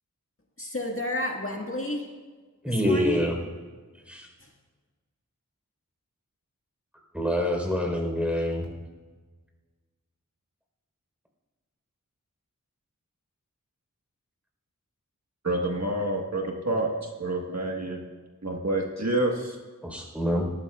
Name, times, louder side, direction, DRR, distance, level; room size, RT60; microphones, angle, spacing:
voice 1, 0.6-2.1 2.7-3.3 4.4-4.5, left 1 dB, 40° left, 0 dB, 1.8 m, -31 dB
voice 2, 2.6-3.4 4.1-4.3 7.1-8.7 19.8-20.5, equal, 5° right, 1 dB, 4.0 m, -26 dB
voice 3, 15.4-18.0 18.4-19.6, right 1 dB, 55° right, 0 dB, 1.5 m, -28 dB
19.0 x 14.5 x 2.4 m, 1.4 s
wide cardioid pair, 45°, 33 cm